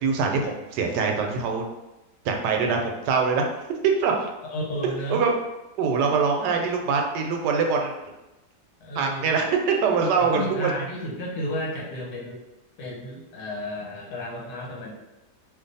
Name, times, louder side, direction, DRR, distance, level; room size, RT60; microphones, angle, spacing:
voice 1, 0.0-1.6 2.2-3.5 4.0-4.3 5.1-5.3 5.8-7.9 8.9-10.7, right 5 dB, 80° right, 2 dB, 1.1 m, -23 dB
voice 2, 4.5-5.3 8.8-9.3 10.2-12.4 12.8-14.9, left 1 dB, 85° left, -2 dB, 1.4 m, -32 dB
2.6 x 2.5 x 3.9 m, 0.98 s
omnidirectional pair, 1.8 m